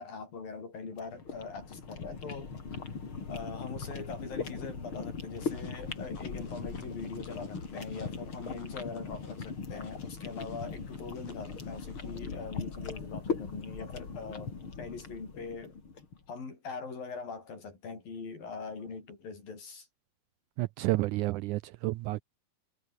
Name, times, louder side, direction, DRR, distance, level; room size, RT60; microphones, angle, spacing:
voice 1, 0.0-2.5 3.3-14.5 14.8-15.8 16.3-19.9, left 4 dB, 80° left, 8.0 m, -42 dB
sound 1, 0.9-16.2, left 5 dB, 35° left, 3.9 m, -39 dB
sound 2, 5.3-12.2, left 3 dB, 60° left, 8.5 m, -58 dB
voice 2, 20.6-22.2, right 19 dB, 80° right, 1.8 m, -30 dB
omnidirectional pair, 4.0 m